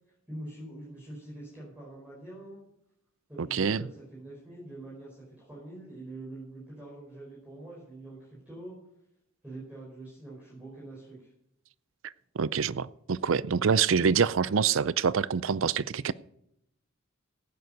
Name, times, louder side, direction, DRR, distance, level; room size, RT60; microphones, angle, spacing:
voice 1, 0.1-2.6 3.3-8.8 9.4-11.3, right 1 dB, 5° right, -7 dB, 5.2 m, -45 dB
voice 2, 3.4-3.8 12.4-16.1, right 6 dB, 65° right, 19 dB, 0.5 m, -26 dB
15.5 x 9.4 x 5.2 m, 0.76 s
head